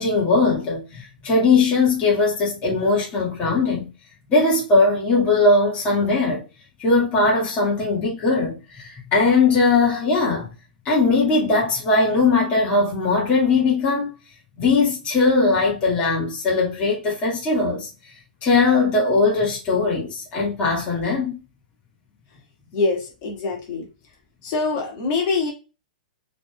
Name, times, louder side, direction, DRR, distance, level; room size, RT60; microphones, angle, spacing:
voice 1, 0.0-3.9 4.3-6.4 6.8-10.5 10.9-14.1 14.6-17.9 18.4-21.4, left 3 dB, 30° left, 2.1 m, -20 dB
voice 2, 22.7-23.9 24.4-25.5, left 4 dB, 45° left, 2.2 m, -24 dB
5.6 x 3.5 x 2.4 m
hypercardioid pair, 115°, 5 cm